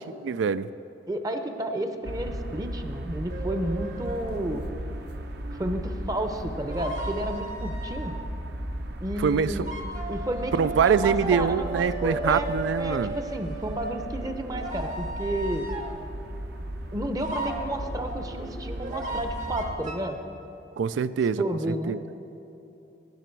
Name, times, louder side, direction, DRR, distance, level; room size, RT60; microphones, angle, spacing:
voice 1, 0.2-0.7 9.2-9.7 10.5-13.1 20.8-21.4 21.9-22.0, right 6 dB, 80° right, 16 dB, 0.3 m, -24 dB
voice 2, 1.1-4.6 5.5-8.2 9.0-9.7 10.1-12.5 12.8-15.7 16.9-20.2 21.4-22.0, right 1 dB, 20° right, 6 dB, 0.7 m, -31 dB
sound 1, 2.0-19.8, equal, 60° right, 0.8 m, -36 dB
sound 2, 3.3-8.3 9.6-16.1 17.2-20.0, right 2 dB, 45° right, 1.2 m, -37 dB
18.0 x 6.8 x 4.6 m, 3.0 s
head